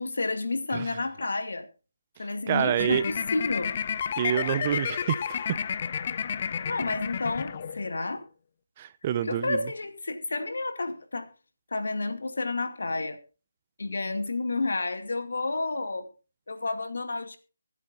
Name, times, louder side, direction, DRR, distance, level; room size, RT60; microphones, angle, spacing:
voice 1, 0.0-1.7 2.2-3.7 6.6-8.2 9.2-11.3 11.7-13.2 13.8-16.1 16.5-17.4, left 3 dB, 70° left, 2.3 m, -30 dB
voice 2, 2.5-3.0 4.2-5.2 8.8-9.6, right 10 dB, 25° right, 0.5 m, -27 dB
sound 1, 2.8-8.0, left 7 dB, 35° left, 0.6 m, -31 dB
24.5 x 8.3 x 2.6 m
figure-of-eight pair, 160°, 0 cm